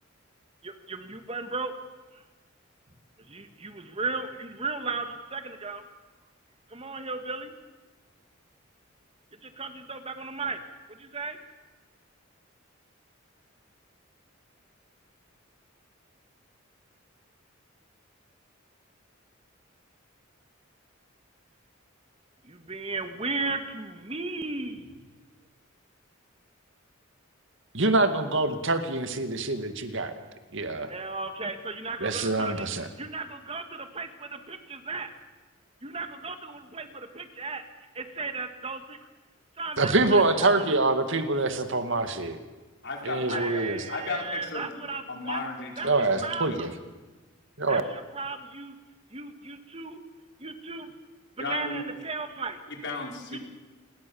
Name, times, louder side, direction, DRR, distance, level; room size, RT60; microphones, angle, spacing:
voice 1, 0.6-1.7 3.3-5.8 6.7-7.5 9.6-10.6 11.0-11.4 22.5-24.8 30.9-32.5 33.0-35.1 35.8-37.6 38.0-39.0 39.6-40.5 41.2-41.3 43.3-45.4 45.8-45.9 46.2-46.7 47.7-48.7 49.1-50.0 50.4-50.9 51.4-52.6 53.3-53.4, right 3 dB, 30° right, 7 dB, 2.0 m, -35 dB
voice 2, 27.7-30.1 30.5-30.9 32.0-32.9 39.8-42.4 43.0-43.8 45.8-46.7 47.6-47.8, right 2 dB, 65° right, 8 dB, 2.2 m, -25 dB
voice 3, 42.8-46.6 51.4-52.0 52.7-53.4, left 3 dB, 60° left, 2 dB, 4.7 m, -36 dB
28.5 x 22.0 x 7.2 m, 1.2 s
head